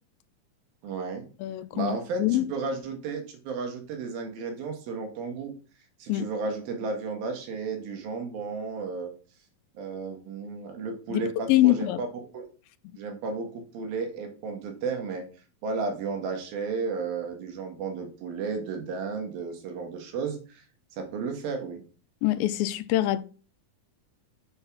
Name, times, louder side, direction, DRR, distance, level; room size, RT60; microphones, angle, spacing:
voice 1, 0.8-1.3 1.7-5.5 6.0-9.1 9.8-12.1 12.3-12.5 13.0-15.3 15.6-20.6 21.0-21.8, right 4 dB, 85° right, 3.4 m, -33 dB
voice 2, 1.4-2.5 6.1-6.3 11.1-12.0 22.2-23.2, left 15 dB, 90° left, 2.4 m, -24 dB
7.8 x 4.9 x 5.8 m
omnidirectional pair, 4.1 m